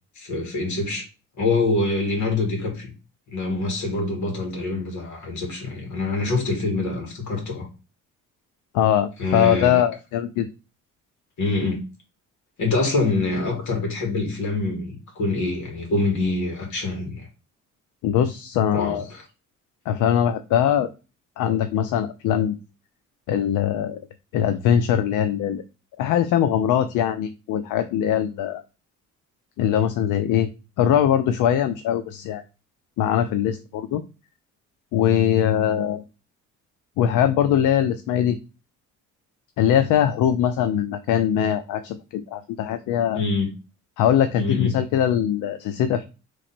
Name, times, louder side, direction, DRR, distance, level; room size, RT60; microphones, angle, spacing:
voice 1, 0.2-1.1 1.4-2.9 3.3-7.7 9.2-9.8 11.4-11.8 12.6-17.3 18.7-19.2 43.1-43.5 44.4-44.7, left 3 dB, 70° left, 2.2 m, -25 dB
voice 2, 8.7-10.5 18.0-19.1 19.9-20.9 21.4-22.6 23.3-24.0 24.3-25.6 26.0-28.6 29.6-30.5 30.8-32.4 33.0-34.0 34.9-36.0 37.0-38.4 39.6-43.2 44.0-46.1, left 10 dB, 85° left, 0.5 m, -21 dB
3.7 x 3.2 x 4.3 m
cardioid pair, 90°, 30 cm